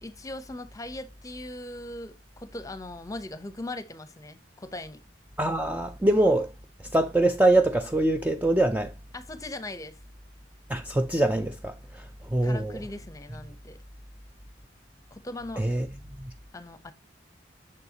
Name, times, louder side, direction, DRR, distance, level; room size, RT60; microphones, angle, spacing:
voice 1, 0.0-5.0 9.1-10.0 12.4-13.8 15.1-15.6 16.5-16.9, left 2 dB, 20° left, 0.8 m, -39 dB
voice 2, 5.4-6.5 6.8-8.9 10.7-12.8 15.6-15.9 16.2-16.3, right 1 dB, 10° right, 0.4 m, -24 dB
6.8 x 6.5 x 2.8 m
head